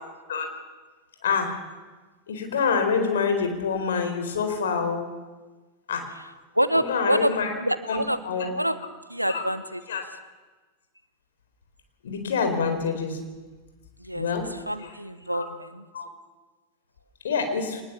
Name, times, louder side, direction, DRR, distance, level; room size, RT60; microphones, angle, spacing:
voice 1, 1.2-1.6 2.3-5.1 5.9-6.1 6.7-7.5 7.9-8.5 9.3-9.4 9.9-10.1 12.0-13.2 14.1-14.5 14.8-14.9 15.3-15.5 15.9-16.1 17.2-17.8, left 5 dB, 65° left, 6 dB, 4.3 m, -26 dB
voice 2, 6.5-7.3 7.6-8.2 8.6-8.8 9.1-9.8 14.0-14.2 14.7-15.8, equal, 90° right, 13 dB, 1.2 m, -26 dB
24.0 x 20.0 x 7.2 m, 1.3 s
figure-of-eight pair, 90°, 0 cm